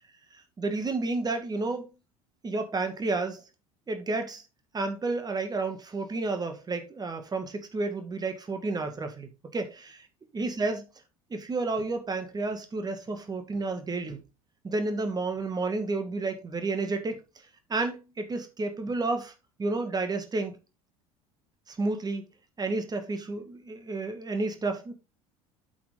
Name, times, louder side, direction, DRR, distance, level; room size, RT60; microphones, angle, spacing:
voice 1, 0.6-1.9 2.4-3.4 3.9-4.4 4.7-9.9 10.3-10.9 11.3-14.2 14.6-17.2 17.7-19.3 19.6-20.6 21.7-22.2 22.6-24.9, right 3 dB, 20° right, 2.0 m, -31 dB
8.3 x 6.8 x 3.8 m
figure-of-eight pair, 65°, 19 cm